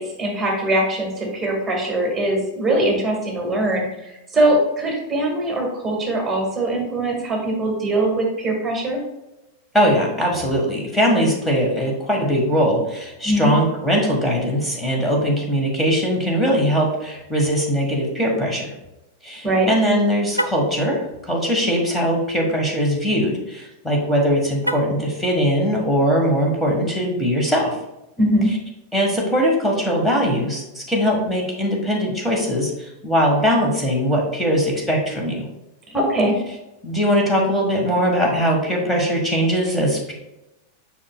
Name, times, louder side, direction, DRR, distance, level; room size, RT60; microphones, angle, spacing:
voice 1, 0.0-9.0 13.2-13.5 19.4-19.7 28.2-28.5 35.9-36.4, right 1 dB, 15° right, -1 dB, 2.0 m, -21 dB
voice 2, 9.7-18.7 19.2-27.7 28.9-35.5 36.8-40.1, equal, 5° left, -2 dB, 1.6 m, -20 dB
Car, 20.3-20.7 24.6-25.1, right 1 dB, 90° right, 0.3 m, -26 dB
7.2 x 5.8 x 2.3 m, 0.93 s
figure-of-eight pair, 90°, 0 cm